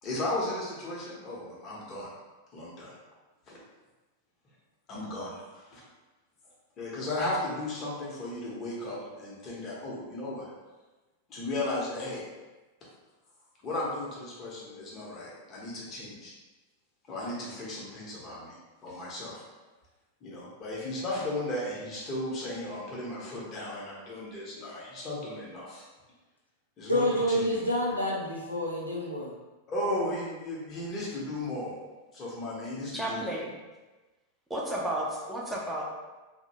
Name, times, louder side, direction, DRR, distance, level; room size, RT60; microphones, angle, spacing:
voice 1, 0.0-2.1 2.5-2.9 3.5-3.6 4.9-5.8 6.8-10.5 11.3-12.2 13.6-16.3 17.1-18.5 18.8-19.4 20.2-25.9 26.8-27.6 29.7-31.8 32.1-33.2, left 1 dB, 30° left, -6 dB, 0.9 m, -35 dB
voice 2, 26.9-29.3, equal, 85° left, -4 dB, 0.5 m, -28 dB
voice 3, 32.9-33.5 34.5-35.8, right 1 dB, 5° right, -4 dB, 0.6 m, -32 dB
2.6 x 2.1 x 2.7 m, 1.2 s
figure-of-eight pair, 90°, 0 cm